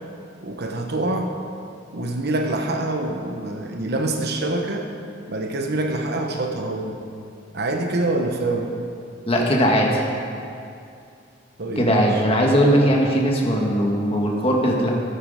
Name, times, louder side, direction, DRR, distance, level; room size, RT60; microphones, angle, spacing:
voice 1, 0.4-1.4 1.9-4.9 5.3-7.0 7.5-8.7 11.6-12.2, right 2 dB, 60° right, 3 dB, 1.1 m, -25 dB
voice 2, 9.3-10.0 11.7-14.9, equal, 30° left, -1 dB, 1.5 m, -19 dB
13.0 x 9.4 x 5.0 m, 2.5 s
head